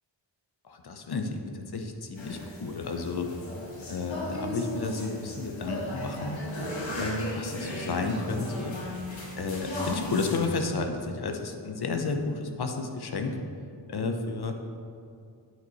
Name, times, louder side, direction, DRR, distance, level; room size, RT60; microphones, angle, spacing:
voice 1, 0.6-3.3 3.9-6.4 6.9-8.8 9.4-13.4 13.9-14.5, left 3 dB, 55° left, 5 dB, 0.7 m, -32 dB
sound 1, 2.2-10.6, left 1 dB, 70° left, 1.5 m, -36 dB
9.4 x 4.6 x 4.1 m, 2.4 s
wide cardioid pair, 115°, 46 cm